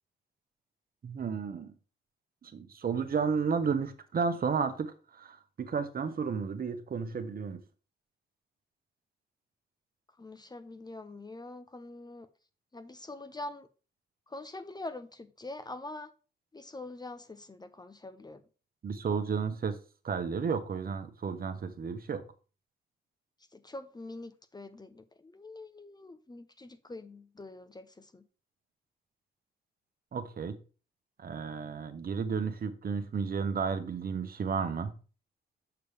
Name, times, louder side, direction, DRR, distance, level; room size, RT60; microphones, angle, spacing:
voice 1, 1.0-1.7 2.4-7.6 18.8-19.8 20.0-22.2 30.1-30.6 31.2-35.0, right 5 dB, 50° right, 1.1 m, -32 dB
voice 2, 10.2-12.3 12.7-13.7 14.3-16.1 16.5-18.4 23.5-28.2, left 2 dB, 20° left, 0.7 m, -44 dB
6.9 x 6.6 x 3.4 m
supercardioid pair, 65°, 20 cm